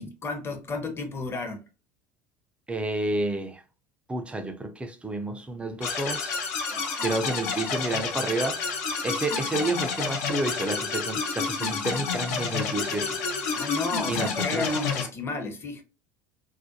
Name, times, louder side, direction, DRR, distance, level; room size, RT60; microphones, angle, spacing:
voice 1, 0.0-1.7 6.7-7.1 13.5-15.8, left 3 dB, 25° left, 0.7 m, -32 dB
voice 2, 2.7-3.6 4.1-6.4 7.0-8.6 9.0-13.2 14.1-14.7, right 2 dB, 10° right, 0.4 m, -30 dB
sound 1, 5.8-15.1, left 5 dB, 65° left, 0.6 m, -29 dB
2.5 x 2.1 x 2.6 m
figure-of-eight pair, 70°, 10 cm